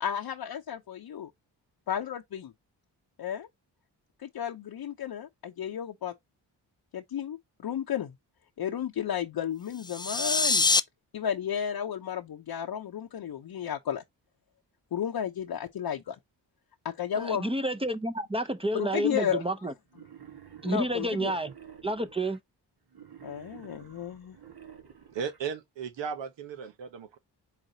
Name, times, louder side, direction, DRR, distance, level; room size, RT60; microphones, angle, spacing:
voice 1, 0.0-1.3 1.9-2.5 3.2-3.5 4.2-6.1 6.9-8.1 8.6-10.7 11.1-14.0 14.9-16.2 16.8-17.5 18.7-19.4 20.6-21.3 23.2-24.4, left 9 dB, 55° left, 0.8 m, -33 dB
sound 1, 9.8-10.8, left 3 dB, 10° left, 0.3 m, -24 dB
voice 2, 17.2-19.7 20.6-21.5 21.8-22.4, right 1 dB, 15° right, 0.7 m, -30 dB
Wild animals, 19.9-22.4 22.9-25.4, right 8 dB, 55° right, 1.5 m, -51 dB
voice 3, 25.1-27.2, right 6 dB, 75° right, 1.1 m, -36 dB
4.9 x 3.7 x 2.8 m
supercardioid pair, 45°, 45 cm